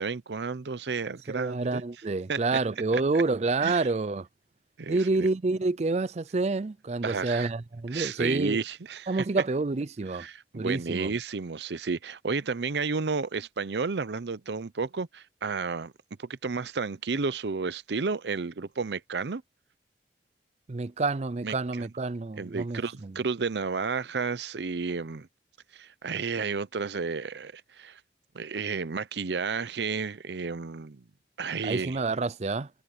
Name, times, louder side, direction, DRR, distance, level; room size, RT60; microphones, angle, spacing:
voice 1, 0.0-1.8 2.3-2.4 3.6-3.8 4.8-5.0 7.0-7.5 7.9-9.2 10.1-15.9 16.2-19.4 21.4-21.9 22.4-25.3 25.7-28.0 28.3-31.0 31.4-32.0, right 4 dB, 75° right, 0.7 m, -32 dB
voice 2, 1.3-4.3 4.9-8.6 9.1-10.3 10.5-11.1 20.7-23.2 31.6-32.7, right 3 dB, 40° right, 0.5 m, -28 dB
head